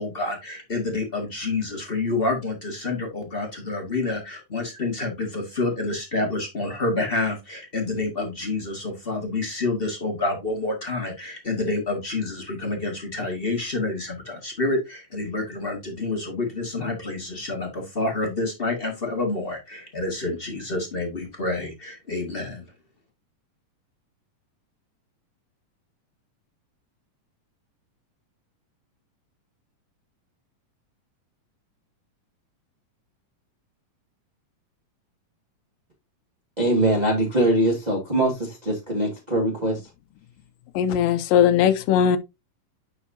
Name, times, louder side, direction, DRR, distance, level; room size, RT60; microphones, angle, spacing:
voice 1, 0.0-22.6, left 2 dB, 35° left, 0.9 m, -28 dB
voice 2, 36.6-39.8, right 1 dB, 20° right, 1.4 m, -22 dB
voice 3, 40.8-42.2, left 9 dB, 85° left, 2.5 m, -19 dB
10.0 x 4.9 x 2.7 m
omnidirectional pair, 3.9 m